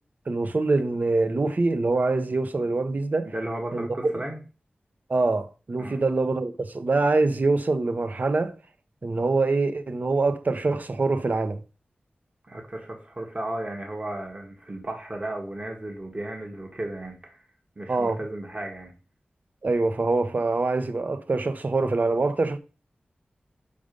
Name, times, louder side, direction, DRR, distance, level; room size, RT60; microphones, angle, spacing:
voice 1, 0.3-3.3 3.7-4.1 5.1-8.5 9.0-11.6 17.9-18.2 19.6-22.6, right 3 dB, 55° right, 0.7 m, -24 dB
voice 2, 3.3-4.4 5.8-6.0 12.4-17.4 17.8-18.9, right 1 dB, 35° right, 1.6 m, -34 dB
5.2 x 5.1 x 5.2 m
wide cardioid pair, 55°, 3 cm